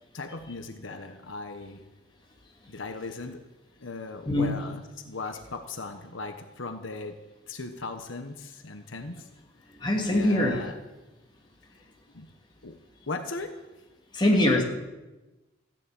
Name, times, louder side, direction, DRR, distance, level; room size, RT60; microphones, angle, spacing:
voice 1, 0.1-1.8 2.7-3.4 3.8-9.3 9.7-9.8 10.1-10.8 12.1-12.3 12.6-12.8 13.1-13.6, left 3 dB, 80° left, 7 dB, 1.2 m, -38 dB
voice 2, 9.8-10.6 14.1-14.6, left 1 dB, 25° left, 0 dB, 2.6 m, -22 dB
14.5 x 10.5 x 9.1 m, 1.1 s
head